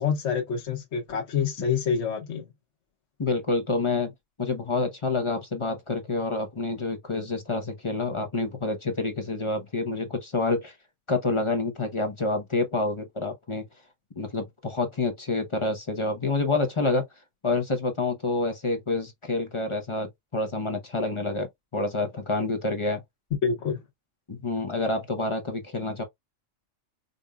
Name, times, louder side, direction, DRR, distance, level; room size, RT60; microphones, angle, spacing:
voice 1, 0.0-2.5 23.4-23.8, left 6 dB, 65° left, 1.3 m, -27 dB
voice 2, 3.2-4.1 4.4-10.8 11.1-13.7 14.2-17.1 17.4-23.0 24.3-26.0, left 3 dB, 30° left, 0.7 m, -28 dB
5.1 x 2.6 x 2.3 m
omnidirectional pair, 1.3 m